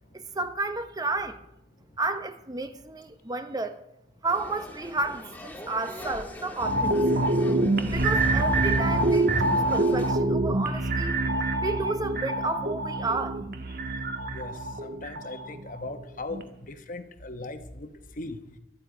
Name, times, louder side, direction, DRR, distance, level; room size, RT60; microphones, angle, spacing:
voice 1, 0.1-1.4 2.0-3.8 4.2-7.5 7.9-13.4, right 3 dB, 20° right, 0.8 m, -32 dB
sound 1, 4.2-10.1, left 1 dB, 10° left, 1.6 m, -42 dB
sound 2, 6.6-15.9 16.3-16.4, right 2 dB, 60° right, 1.4 m, -26 dB
voice 2, 15.0-15.4 15.7-16.4 16.9-17.6 18.2-18.4, left 2 dB, 50° left, 1.1 m, -37 dB
24.5 x 10.0 x 5.0 m
head